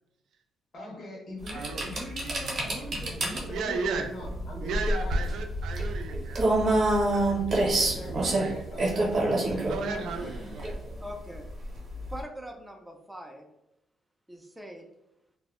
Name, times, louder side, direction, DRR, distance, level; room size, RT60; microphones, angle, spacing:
voice 1, 0.7-5.2 7.5-11.0, left 1 dB, 40° left, -3 dB, 0.7 m, -41 dB
sound 1, 1.4-12.2, right 2 dB, 45° right, 0.7 m, -28 dB
voice 2, 1.5-1.9 3.3-4.1 4.6-6.5 7.1-8.5 9.6-10.8, right 4 dB, 75° right, 5 dB, 0.4 m, -35 dB
Walk footsteps, 2.7-9.7, left 1 dB, 80° left, 0.4 m, -41 dB
voice 3, 11.0-11.5 12.1-13.5 14.3-14.8, equal, 5° right, 2 dB, 0.3 m, -42 dB
2.0 x 2.0 x 3.5 m, 0.84 s
cardioid pair, 125°, 0 cm